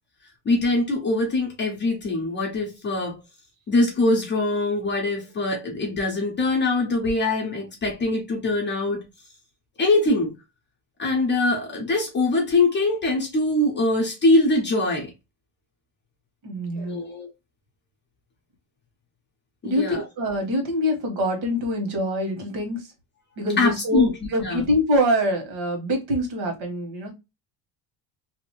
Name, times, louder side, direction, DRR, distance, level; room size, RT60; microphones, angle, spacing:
voice 1, 0.5-3.2 3.7-9.0 9.8-10.3 11.0-15.1 16.8-17.3 19.6-20.0 23.6-24.1 24.4-24.6, left 2 dB, 25° left, 0.5 m, -23 dB
voice 2, 16.4-17.0 19.6-22.9 23.4-27.1, equal, 70° right, 1.4 m, -25 dB
2.7 x 2.5 x 2.9 m
cardioid pair, 175°, 48 cm